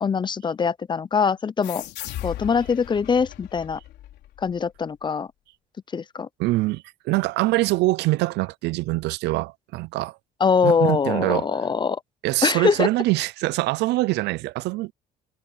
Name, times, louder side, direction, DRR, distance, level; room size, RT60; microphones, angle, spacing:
voice 1, 0.0-1.8 2.2-3.8 4.4-5.3 5.9-6.3 10.4-12.0 12.4-12.9, left 6 dB, 25° left, 0.6 m, -23 dB
sound 1, 1.6-4.8, left 14 dB, 75° left, 3.9 m, -37 dB
voice 2, 6.4-10.2 10.6-11.6 12.2-14.9, right 20 dB, 80° right, 0.5 m, -24 dB
cardioid pair, 105°, 17 cm